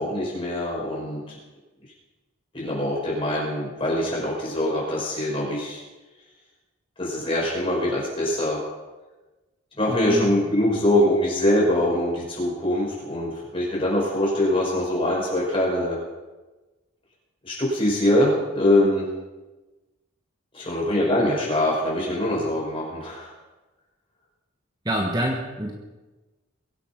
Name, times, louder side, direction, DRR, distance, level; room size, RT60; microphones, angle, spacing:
voice 1, 0.0-1.4 2.5-5.8 7.0-8.6 9.8-16.0 17.4-19.0 20.5-23.3, left 1 dB, 25° left, -4 dB, 5.7 m, -23 dB
voice 2, 9.9-10.3 24.8-25.7, right 1 dB, 20° right, 0 dB, 1.3 m, -26 dB
22.5 x 8.3 x 6.0 m, 1.2 s
head